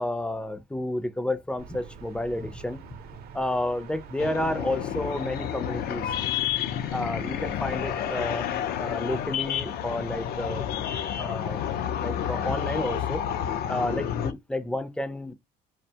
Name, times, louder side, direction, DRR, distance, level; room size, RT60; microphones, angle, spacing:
voice 1, 0.0-2.8 3.3-6.1 6.9-8.5 8.8-10.6 11.2-11.6 12.0-13.2 13.7-15.3, left 1 dB, 5° left, 0.4 m, -31 dB
sound 1, 1.6-13.6, right 6 dB, 65° right, 0.5 m, -47 dB
sound 2, 4.2-14.3, left 10 dB, 70° left, 0.4 m, -30 dB
2.4 x 2.2 x 2.7 m
cardioid pair, 110°, 17 cm